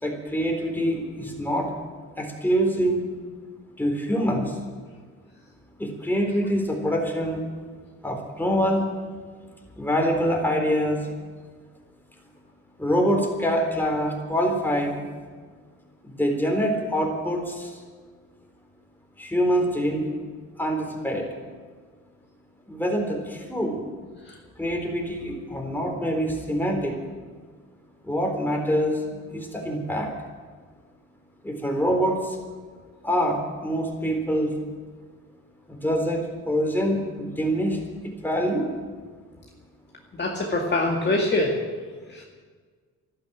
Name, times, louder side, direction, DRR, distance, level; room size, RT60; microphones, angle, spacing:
voice 1, 0.0-1.7 2.2-3.0 3.8-4.6 5.8-7.4 8.0-8.9 9.8-11.1 12.8-15.0 16.0-17.8 19.2-20.1 20.6-21.3 22.7-23.8 24.6-27.0 28.0-29.0 29.3-30.1 31.4-32.4 33.0-34.5 35.7-36.2 36.5-37.8 38.0-38.7, equal, 5° left, 1 dB, 3.9 m, -25 dB
voice 2, 40.2-41.6 42.1-42.2, left 2 dB, 35° left, -1 dB, 2.2 m, -24 dB
12.5 x 12.0 x 8.7 m, 1.5 s
cardioid pair, 90°, 30 cm